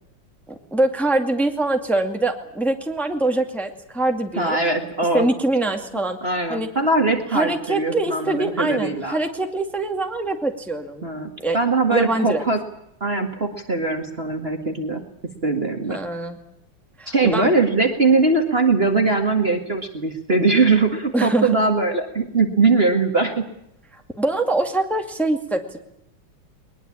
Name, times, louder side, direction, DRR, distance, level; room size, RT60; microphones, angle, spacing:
voice 1, 0.7-4.6 5.1-6.2 6.5-6.7 7.3-11.1 11.4-11.6 11.9-12.4 15.9-16.4 17.0-17.5 21.1-21.5 24.2-25.8, right 2 dB, ahead, 4 dB, 2.1 m, -23 dB
voice 2, 4.4-5.3 6.2-9.2 11.0-12.6 13.0-15.0 15.4-16.0 17.1-23.4, right 3 dB, 30° right, 4 dB, 2.1 m, -21 dB
21.5 x 21.0 x 8.7 m, 0.78 s
omnidirectional pair, 2.3 m